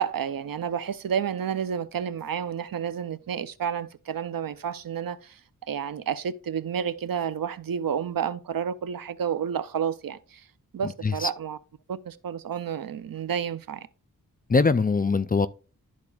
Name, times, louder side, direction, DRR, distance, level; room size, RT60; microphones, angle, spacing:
voice 1, 0.0-5.4 5.7-10.5 10.7-11.6 11.9-13.9, right 8 dB, 75° right, 0.6 m, -30 dB
voice 2, 10.8-11.3 14.5-15.5, left 4 dB, 25° left, 0.4 m, -22 dB
12.0 x 4.2 x 2.3 m
wide cardioid pair, 75°, 35 cm